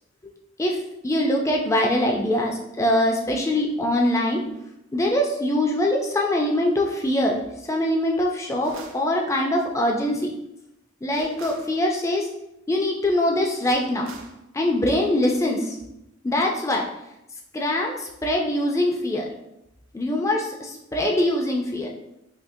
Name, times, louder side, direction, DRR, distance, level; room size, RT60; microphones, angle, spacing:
voice 1, 0.6-4.4 4.9-7.4 7.7-10.3 11.0-12.3 12.7-14.1 14.5-15.8 16.2-16.9 17.5-19.3 19.9-21.9, left 1 dB, 15° left, 0 dB, 0.4 m, -23 dB
sound 1, 8.6-9.1 11.1-11.7 13.6-14.4, right 3 dB, 85° right, 0.4 m, -42 dB
3.6 x 2.7 x 2.7 m, 0.86 s
head